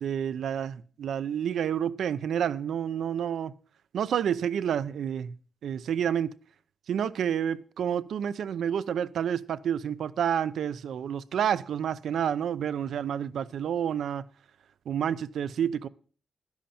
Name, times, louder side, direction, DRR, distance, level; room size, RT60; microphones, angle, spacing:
voice 1, 0.0-3.5 3.9-5.3 5.6-6.3 6.9-14.3 14.9-15.9, right 9 dB, 85° right, 0.6 m, -29 dB
11.5 x 10.5 x 4.3 m
wide cardioid pair, 140°, 0 cm